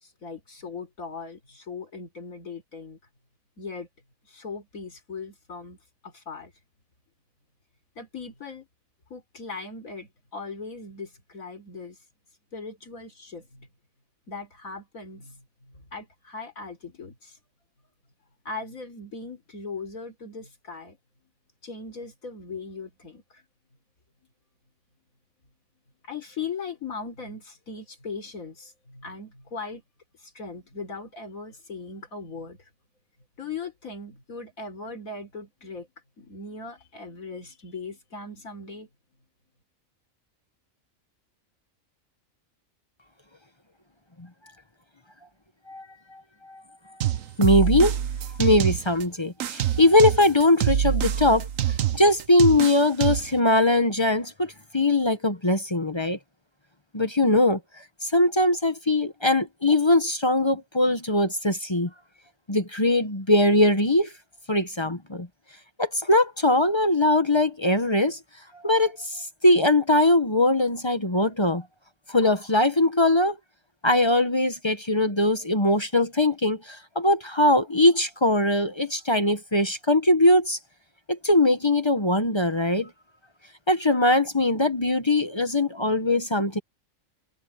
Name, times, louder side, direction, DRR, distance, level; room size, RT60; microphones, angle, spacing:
voice 1, 0.0-3.0 3.6-3.9 4.3-5.8 6.0-6.5 8.0-8.7 9.1-12.0 12.5-13.7 14.3-17.4 18.4-21.0 21.6-23.4 26.0-29.8 30.2-32.6 33.4-35.9 36.2-38.9, left 4 dB, 85° left, 4.1 m, -39 dB
sound 1, 47.0-49.0 49.4-53.4, right 10 dB, 75° right, 1.2 m, -25 dB
voice 2, 47.4-48.0 48.4-51.5 51.9-56.2 56.9-57.6 58.0-61.9 62.5-64.1 64.5-65.3 65.8-68.2 68.6-71.6 72.1-73.4 73.8-80.6 81.1-82.9 83.7-86.6, left 1 dB, 20° left, 1.0 m, -21 dB
omnidirectional pair, 1.4 m